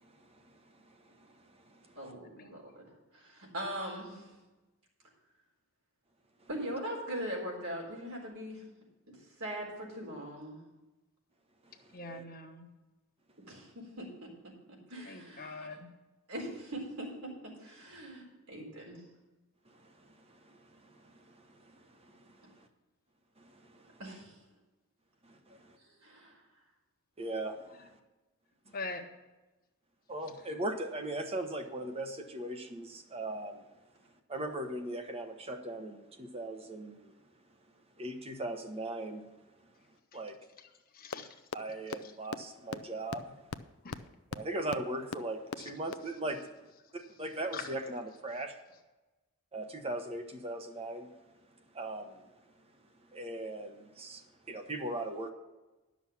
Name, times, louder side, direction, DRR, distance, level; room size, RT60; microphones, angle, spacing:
voice 1, 0.0-0.5 0.7-2.0 11.7-12.2 13.5-13.6 19.7-22.7 23.4-24.0 25.2-25.8 27.2-28.0 30.1-33.6 34.3-37.2 38.0-39.2 40.1-40.4 41.5-43.4 44.3-46.5 46.9-48.5 49.5-51.2 51.7-52.2 53.1-55.3, right 1 dB, 25° right, 1.0 m, -40 dB
voice 2, 2.0-4.3 6.5-8.6 9.1-10.6 13.5-14.3 14.7-15.8 16.3-17.3 17.6-19.0 24.0-24.4 25.8-26.4, equal, 75° right, 4.0 m, -41 dB
voice 3, 11.9-12.7 15.1-15.9 28.7-29.0 40.9-41.3 43.8-44.0 45.6-45.7 47.5-47.7, left 3 dB, 40° left, 1.2 m, -42 dB
sound 1, 41.1-41.2 41.5-41.6 41.9-42.0 42.3-42.4 42.7-42.8 43.1-43.2 43.5-43.6 43.9-44.0 44.3-44.4 44.7-44.8 45.1-45.2 45.5-45.6 45.9-46.0, left 6 dB, 75° left, 0.5 m, -35 dB
11.5 x 6.3 x 7.0 m
head